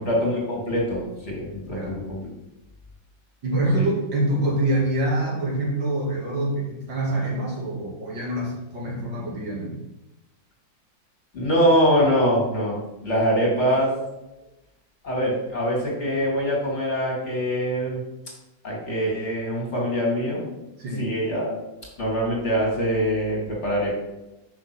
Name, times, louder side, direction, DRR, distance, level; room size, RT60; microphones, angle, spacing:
voice 1, 0.0-2.2 3.8-3.9 11.3-12.8 13.0-13.9 15.0-18.0 18.6-20.6 21.0-21.5 22.0-23.9, equal, 35° left, -3 dB, 2.5 m, -23 dB
voice 2, 3.4-9.8 20.8-21.1, right 1 dB, 70° right, -3 dB, 2.7 m, -25 dB
6.3 x 5.9 x 6.0 m, 0.98 s
omnidirectional pair, 2.1 m